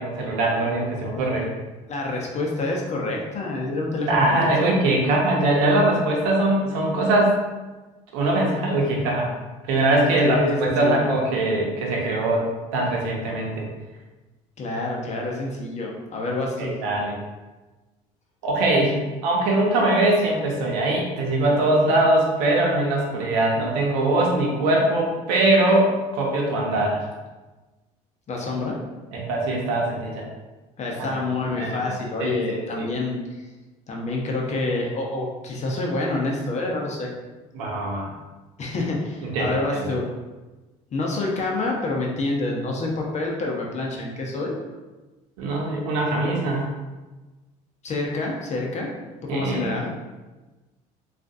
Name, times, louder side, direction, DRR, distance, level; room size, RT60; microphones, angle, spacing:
voice 1, 0.0-1.5 4.1-7.4 8.1-9.3 9.7-12.5 12.7-13.7 16.6-17.1 18.4-19.0 19.2-25.9 26.1-27.0 29.1-30.2 31.0-31.2 31.6-32.9 37.5-38.1 39.3-39.8 45.4-46.7 49.3-49.7, right 2 dB, 85° right, -1 dB, 0.8 m, -22 dB
voice 2, 1.9-4.5 10.2-11.2 14.6-16.7 28.3-28.7 30.8-33.2 33.9-37.1 38.6-40.0 40.9-44.6 47.8-48.9 49.2-49.9, left 2 dB, 40° left, -1 dB, 0.8 m, -27 dB
3.6 x 2.5 x 2.6 m, 1.2 s
supercardioid pair, 85°, 17 cm